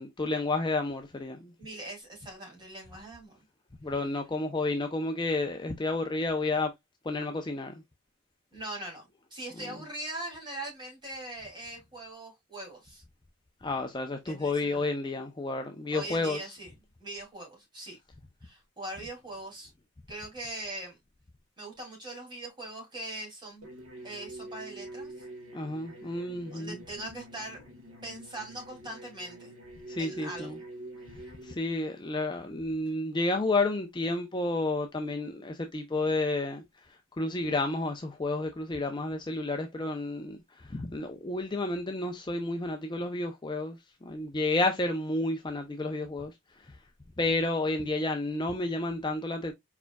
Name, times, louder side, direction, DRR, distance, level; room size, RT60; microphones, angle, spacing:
voice 1, 0.0-1.5 3.8-6.7 7.0-7.8 13.6-16.5 25.5-26.8 29.9-30.6 31.4-36.6 37.2-46.3 46.6-46.7 47.2-49.5, left 2 dB, 20° left, 0.5 m, -31 dB
voice 2, 1.6-3.4 8.5-9.1 9.3-13.0 14.3-14.9 15.9-16.7 17.0-18.0 18.4-19.7 20.1-21.0 21.6-23.7 24.0-25.1 26.5-27.6 28.0-29.5 30.0-30.6 32.9-33.0, right 1 dB, 20° right, 2.7 m, -41 dB
sound 1, 23.6-31.5, right 1 dB, 90° right, 1.8 m, -46 dB
4.7 x 4.6 x 2.2 m
head